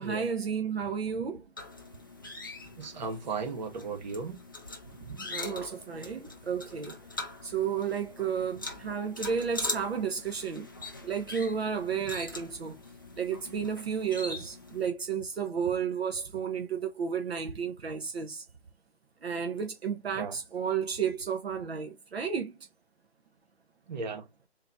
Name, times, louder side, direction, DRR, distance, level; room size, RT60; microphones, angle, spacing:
voice 1, 0.0-1.4 5.0-7.0 7.4-10.7 11.0-12.8 13.2-18.4 19.2-22.6, right 7 dB, 60° right, 1.0 m, -32 dB
sound 1, 1.6-14.9, left 2 dB, 20° left, 0.4 m, -42 dB
voice 2, 2.8-4.4 20.2-20.4 23.9-24.2, right 4 dB, 40° right, 1.2 m, -35 dB
3.8 x 2.8 x 3.5 m
figure-of-eight pair, 150°, 34 cm